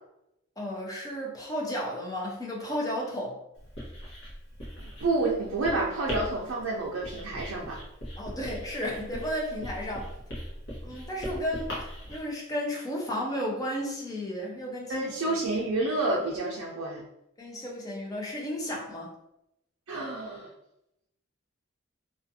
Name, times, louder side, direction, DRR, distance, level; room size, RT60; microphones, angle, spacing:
voice 1, 0.6-3.4 8.2-10.1 10.8-15.1 17.4-19.1, equal, 15° left, -2 dB, 0.5 m, -33 dB
Writing, 3.6-12.2, equal, 55° left, 0.9 m, -40 dB
voice 2, 4.8-7.8 14.9-17.0 19.9-20.5, right 2 dB, 80° right, -3 dB, 0.4 m, -29 dB
2.4 x 2.3 x 2.6 m, 0.82 s
head